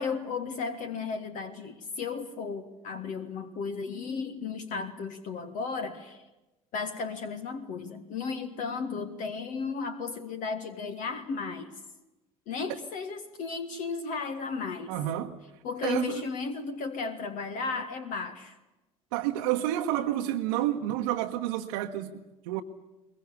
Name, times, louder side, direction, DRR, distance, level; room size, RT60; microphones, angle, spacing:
voice 1, 0.0-6.3 6.7-11.7 12.5-15.0 15.6-18.6, left 5 dB, 45° left, 8 dB, 1.7 m, -34 dB
voice 2, 14.9-15.3 15.8-16.2 19.1-22.6, right 13 dB, 60° right, 2 dB, 1.2 m, -30 dB
22.5 x 21.5 x 8.4 m, 1.0 s
figure-of-eight pair, 65°, 18 cm